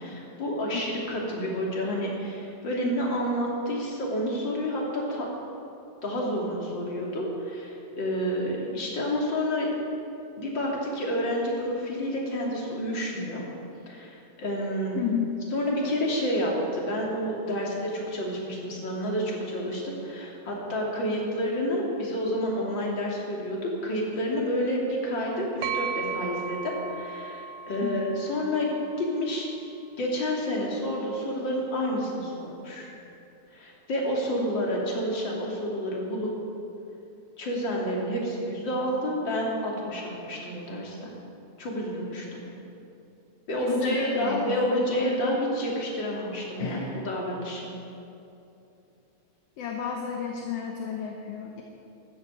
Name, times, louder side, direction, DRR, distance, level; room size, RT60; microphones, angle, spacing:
voice 1, 0.0-5.3 6.0-9.7 10.4-13.4 13.9-15.0 15.5-28.7 29.0-29.5 30.0-32.9 33.5-36.3 37.4-41.1 41.6-42.4 43.5-47.7, equal, 40° left, -3 dB, 3.4 m, -29 dB
voice 2, 15.0-15.3 27.8-28.0 43.6-45.4 46.6-47.0 49.6-51.6, left 7 dB, 65° left, 1 dB, 1.9 m, -32 dB
sound 1, 25.6-29.4, right 7 dB, 80° right, 2.1 m, -36 dB
13.0 x 12.0 x 8.5 m, 2.8 s
omnidirectional pair, 3.5 m